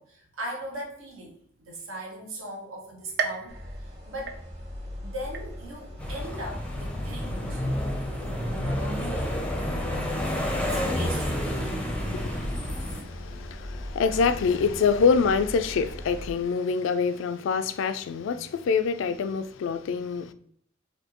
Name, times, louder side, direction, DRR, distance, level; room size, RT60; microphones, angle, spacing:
voice 1, 0.0-4.4 5.0-7.6 8.2-9.3 9.9-11.5, right 1 dB, 85° right, 1.2 m, -39 dB
sound 1, 3.2-4.9 5.3-5.9 6.4-6.5 7.5-7.6, right 5 dB, 50° right, 0.4 m, -35 dB
sound 2, 3.5-16.3, left 1 dB, 30° right, 1.0 m, -38 dB
sound 3, 6.0-13.0, left 1 dB, 5° left, 0.5 m, -30 dB
voice 2, 12.1-20.3, left 5 dB, 70° left, 0.3 m, -26 dB
4.2 x 2.7 x 2.9 m
head